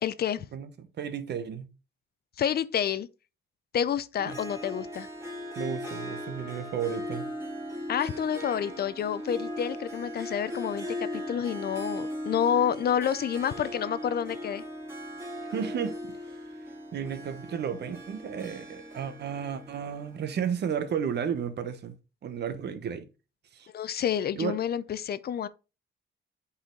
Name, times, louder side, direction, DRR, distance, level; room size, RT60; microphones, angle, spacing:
voice 1, 0.0-0.5 2.4-3.1 3.7-5.1 7.9-14.6 23.7-25.5, left 9 dB, 55° left, 0.5 m, -29 dB
voice 2, 0.5-1.7 4.3-4.4 5.6-7.3 15.5-16.4 16.9-22.0 22.2-23.1 23.5-23.7 24.3-24.5, right 7 dB, 60° right, 1.1 m, -33 dB
Harp, 4.2-20.7, left 1 dB, 15° right, 2.5 m, -38 dB
7.8 x 4.2 x 3.8 m
cardioid pair, 90°, 20 cm